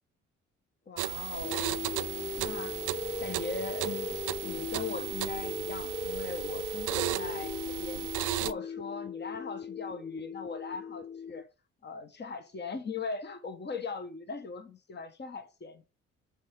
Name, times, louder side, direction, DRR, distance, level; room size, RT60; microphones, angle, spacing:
voice 1, 0.9-1.7 2.4-2.8 3.2-8.1 8.4-11.5 11.8-15.8, left 4 dB, 35° left, 1.4 m, -40 dB
sound 1, 1.0-8.5, right 17 dB, 90° right, 0.5 m, -36 dB
sound 2, 1.4-11.4, left 5 dB, 20° left, 0.4 m, -38 dB
Bowed string instrument, 1.6-6.5, left 3 dB, 60° left, 4.5 m, -58 dB
6.3 x 4.8 x 5.3 m
cardioid pair, 90°, 30 cm